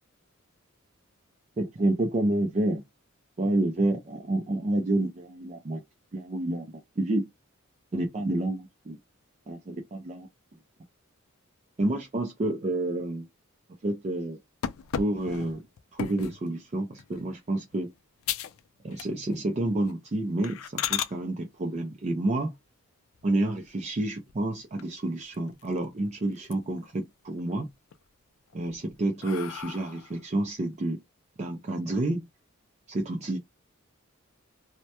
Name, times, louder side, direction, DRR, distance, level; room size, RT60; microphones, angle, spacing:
voice 1, 1.6-2.8 3.4-5.8 6.1-6.7 7.0-7.3 7.9-9.0 9.5-10.3 11.8-13.3 13.8-14.4 15.0-15.7 15.9-17.9 18.8-22.5 23.2-27.7 28.5-31.0 31.4-32.3 32.9-33.4, right 1 dB, 35° right, 0.4 m, -29 dB
sound 1, 14.6-16.4 17.0-17.3 17.7-17.8 18.2-18.6 18.9-19.4 19.8-19.9 20.4-21.1 23.1-23.8 24.3-24.4 24.8-24.9 25.2-26.0 26.3-26.9 27.3-28.0 28.5-30.2, left 9 dB, 70° left, 0.3 m, -35 dB
2.1 x 2.1 x 2.8 m
head